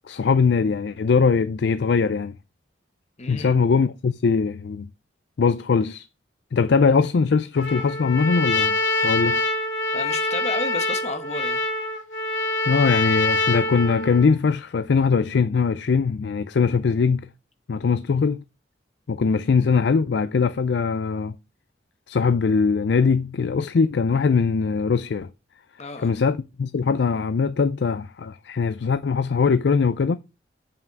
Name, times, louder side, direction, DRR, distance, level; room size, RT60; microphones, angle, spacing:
voice 1, 0.0-2.4 3.3-4.9 5.4-6.1 6.5-8.8 9.0-9.4 12.7-17.3 17.7-18.4 19.1-21.3 22.1-25.3 26.0-30.2, left 5 dB, 65° left, 0.4 m, -21 dB
voice 2, 3.2-3.6 9.9-11.6 25.8-26.1, left 3 dB, 35° left, 1.1 m, -32 dB
Trumpet, 7.5-14.3, left 2 dB, 90° left, 2.2 m, -25 dB
7.3 x 5.8 x 4.6 m
head